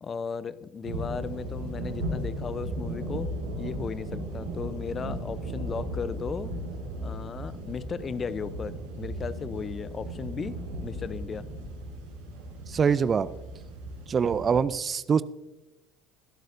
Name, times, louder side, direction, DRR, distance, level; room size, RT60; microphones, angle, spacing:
voice 1, 0.0-6.5 7.0-11.5, left 6 dB, 35° left, 16 dB, 0.7 m, -36 dB
sound 1, 0.8-14.6, right 1 dB, 80° right, 5.0 m, -36 dB
voice 2, 12.7-13.3 14.1-15.2, right 6 dB, 35° right, 17 dB, 0.5 m, -24 dB
22.5 x 11.5 x 2.7 m, 1.0 s
hypercardioid pair, 65°, 0 cm